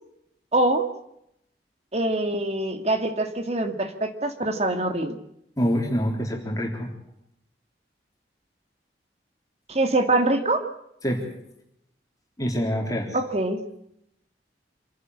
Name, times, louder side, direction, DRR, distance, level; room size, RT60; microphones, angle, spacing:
voice 1, 0.5-0.9 1.9-5.2 9.7-10.6 13.1-13.6, right 2 dB, 35° right, 7 dB, 2.2 m, -24 dB
voice 2, 5.6-6.9 11.0-11.3 12.4-13.2, equal, 20° left, 1 dB, 3.7 m, -26 dB
27.0 x 11.0 x 9.8 m, 0.78 s
head